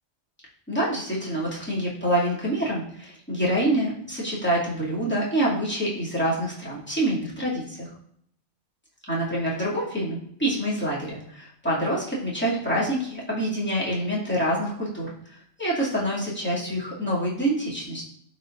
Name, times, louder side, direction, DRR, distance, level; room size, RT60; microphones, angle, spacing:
voice 1, 0.7-7.8 9.1-15.1 15.6-18.1, right 1 dB, 10° left, -8 dB, 2.5 m, -26 dB
12.5 x 4.4 x 2.6 m, 0.68 s
omnidirectional pair, 1.2 m